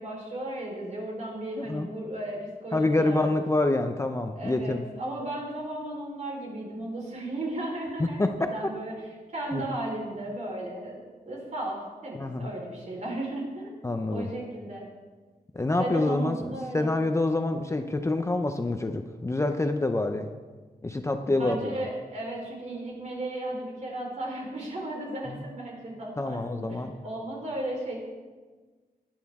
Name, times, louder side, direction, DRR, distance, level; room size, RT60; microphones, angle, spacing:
voice 1, 0.0-3.3 4.4-8.9 9.3-11.0 11.3-13.7 14.1-14.8 15.8-16.9 21.2-28.0, right 1 dB, 45° right, -2 dB, 4.0 m, -35 dB
voice 2, 1.6-1.9 2.7-4.8 8.2-8.5 9.5-9.6 12.1-12.5 13.8-14.3 15.5-20.3 20.8-21.7 25.3-25.4 26.2-26.9, left 2 dB, 15° left, 6 dB, 0.6 m, -27 dB
19.0 x 10.5 x 3.6 m, 1.4 s
wide cardioid pair, 175°, 16 cm